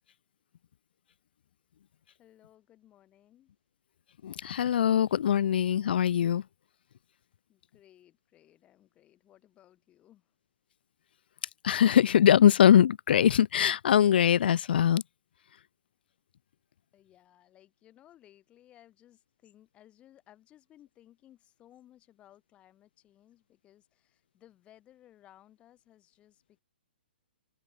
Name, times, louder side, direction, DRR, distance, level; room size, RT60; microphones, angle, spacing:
voice 1, 2.2-3.5 7.5-10.3 16.9-26.6, left 12 dB, 20° left, 6.3 m, -60 dB
voice 2, 4.2-6.4 11.6-15.0, left 9 dB, 65° left, 0.4 m, -22 dB
open air
hypercardioid pair, 150°, 6 cm